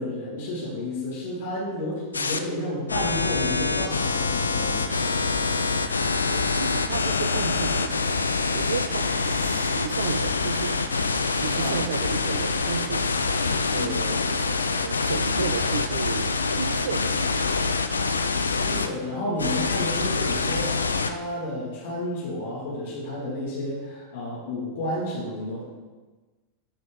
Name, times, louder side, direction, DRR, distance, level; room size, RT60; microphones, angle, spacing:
voice 1, 0.0-5.0 11.6-11.8 13.8-13.9 18.6-25.6, left 1 dB, 55° left, -5 dB, 2.4 m, -31 dB
sound 1, 2.1-2.4 2.9-18.9 19.4-21.1, left 4 dB, 75° left, 0.5 m, -25 dB
voice 2, 6.3-13.1 13.7-17.2, right 7 dB, 65° right, 10 dB, 0.5 m, -33 dB
12.0 x 5.4 x 3.9 m, 1.3 s
figure-of-eight pair, 90°, 0 cm